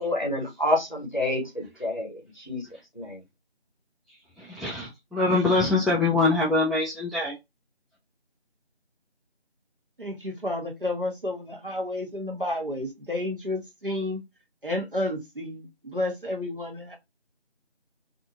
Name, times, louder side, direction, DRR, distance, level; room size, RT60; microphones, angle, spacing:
voice 1, 0.0-2.6 2.9-3.2, left 1 dB, 45° left, 0.7 m, -28 dB
voice 2, 4.1-7.3, left 3 dB, ahead, 0.5 m, -24 dB
voice 3, 10.0-14.2 14.6-17.0, left 1 dB, 50° right, 0.9 m, -31 dB
2.6 x 2.5 x 2.9 m
figure-of-eight pair, 180°, 34 cm